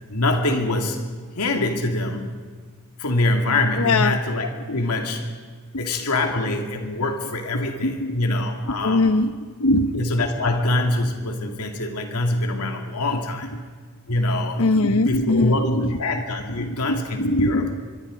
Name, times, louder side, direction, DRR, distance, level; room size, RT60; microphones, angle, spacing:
voice 1, 0.1-1.0 1.3-2.3 3.0-5.3 5.8-9.1 9.9-13.5 14.1-14.6 14.9-17.6, left 2 dB, 90° left, 3 dB, 2.5 m, -24 dB
voice 2, 3.8-4.2 5.7-5.9 6.5-6.6 7.8-8.4 8.7-9.3 9.6-10.0 14.6-16.0 16.6-17.9, left 2 dB, 70° left, 12 dB, 1.0 m, -22 dB
25.0 x 22.5 x 5.2 m, 1.5 s
head